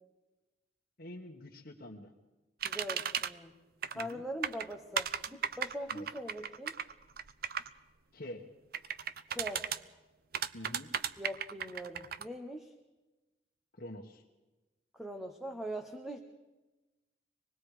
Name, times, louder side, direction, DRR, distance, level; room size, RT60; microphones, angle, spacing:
voice 1, 1.0-2.1 3.9-4.2 5.9-6.1 8.1-8.4 10.5-10.9 13.7-14.2, left 1 dB, 55° left, -1 dB, 1.5 m, -46 dB
voice 2, 2.6-3.5 3.9-6.8 9.3-9.7 11.2-12.7 14.9-16.2, equal, ahead, 5 dB, 1.1 m, -42 dB
sound 1, 2.6-3.3 3.8-4.1 4.4-7.7 8.7-9.8 10.3-12.2, right 8 dB, 55° right, 0.7 m, -35 dB
26.0 x 20.0 x 5.0 m, 1.1 s
head